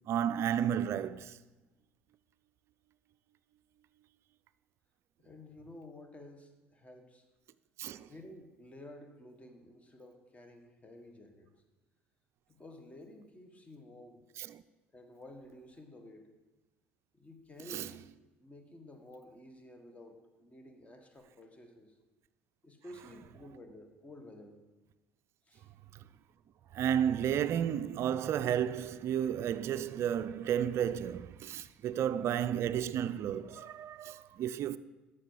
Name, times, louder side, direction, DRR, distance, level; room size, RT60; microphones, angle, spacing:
voice 1, 0.1-1.4 7.8-8.1 14.4-14.6 17.7-17.9 26.7-34.8, right 9 dB, 45° right, 0.4 m, -32 dB
voice 2, 5.2-7.2 8.0-11.5 12.5-14.2 14.9-16.2 17.1-18.0 18.4-22.0 22.6-24.6 25.4-25.7, left 1 dB, 20° left, 1.5 m, -52 dB
12.5 x 6.2 x 4.7 m
figure-of-eight pair, 55°, 6 cm